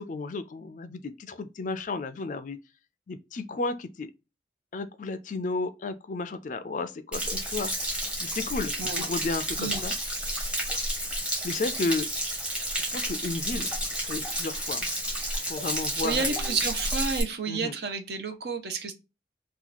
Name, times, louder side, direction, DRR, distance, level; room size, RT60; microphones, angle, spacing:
voice 1, 0.0-2.6 3.1-4.1 4.7-7.7 8.2-9.9 11.4-12.1 12.9-13.7 14.0-14.9 15.5-16.6 17.5-17.7, left 3 dB, 45° left, 0.3 m, -33 dB
Stream / Splash splatter / Trickle dribble, 7.1-17.2, right 1 dB, 5° right, 0.8 m, -31 dB
voice 2, 15.9-19.0, right 5 dB, 65° right, 0.7 m, -31 dB
2.9 x 2.3 x 3.8 m
head